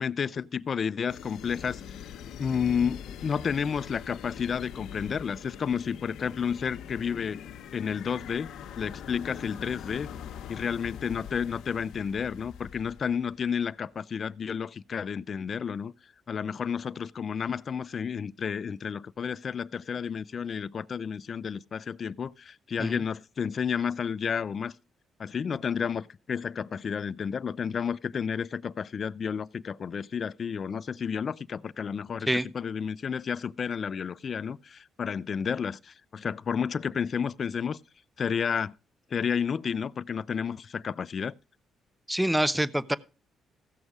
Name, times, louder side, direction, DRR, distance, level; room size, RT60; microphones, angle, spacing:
voice 1, 0.0-2.0 2.4-7.4 7.7-8.5 8.8-10.1 10.5-15.9 16.3-24.7 25.2-37.8 38.2-38.7 39.1-41.3, left 7 dB, 45° left, 0.5 m, -31 dB
sound 1, 1.1-13.4, left 8 dB, 80° left, 1.0 m, -43 dB
voice 2, 42.1-43.0, right 1 dB, 5° right, 0.6 m, -26 dB
15.5 x 6.4 x 4.8 m
cardioid pair, 90°, 0 cm